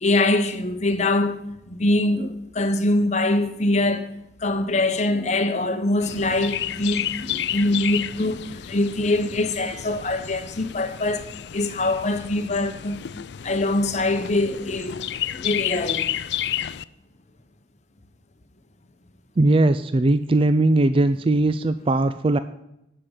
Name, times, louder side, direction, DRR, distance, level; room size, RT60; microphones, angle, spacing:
voice 1, 0.0-4.1 4.4-13.0 13.4-16.1, left 2 dB, 40° left, 1.0 m, -23 dB
Chirp tweet, 6.0-16.8, left 11 dB, 60° left, 0.4 m, -31 dB
voice 2, 19.4-22.4, right 2 dB, 30° right, 0.4 m, -19 dB
11.5 x 5.1 x 8.2 m
head